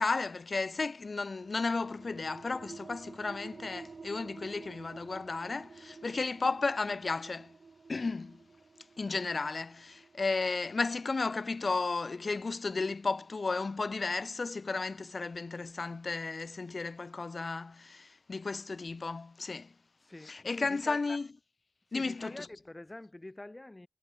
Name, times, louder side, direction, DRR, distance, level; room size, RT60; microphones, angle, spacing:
voice 1, 0.0-7.5 7.9-8.4 9.0-19.7 20.3-21.3 21.9-22.3, left 3 dB, 55° left, 0.6 m, -33 dB
sound 1, 1.4-12.6, right 4 dB, 65° right, 3.8 m, -51 dB
voice 2, 20.1-21.1 21.9-23.9, left 1 dB, 25° left, 3.1 m, -46 dB
cardioid pair, 55°, 0 cm